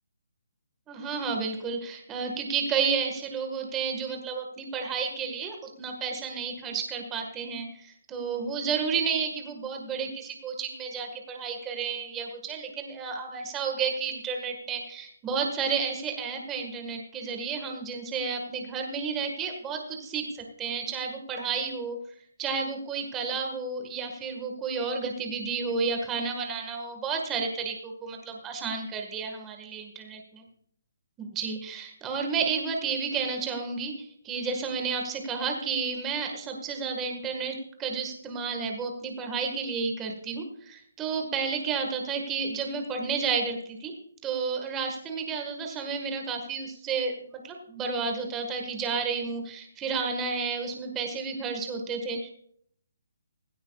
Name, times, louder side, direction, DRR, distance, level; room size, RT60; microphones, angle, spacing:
voice 1, 0.9-22.0 22.4-30.2 31.2-43.9 44.2-52.3, right 5 dB, 10° right, 3 dB, 1.6 m, -31 dB
16.5 x 16.0 x 2.4 m, 0.63 s
hypercardioid pair, 170°, 0 cm